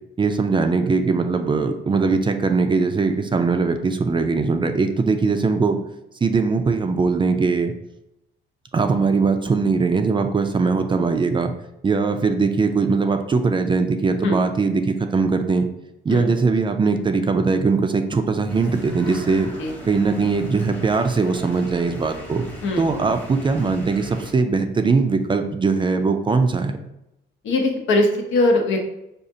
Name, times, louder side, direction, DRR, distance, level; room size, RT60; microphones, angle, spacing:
voice 1, 0.2-5.8 6.2-7.7 8.7-11.5 11.8-15.7 16.0-19.5 19.9-22.5 22.8-26.8, right 4 dB, 25° right, 6 dB, 0.3 m, -20 dB
sound 1, 18.5-24.3, equal, 10° left, 0.9 m, -38 dB
voice 2, 27.4-28.9, left 2 dB, 75° left, 2 dB, 0.7 m, -20 dB
4.9 x 2.4 x 2.7 m, 0.87 s
cardioid pair, 90°, 20 cm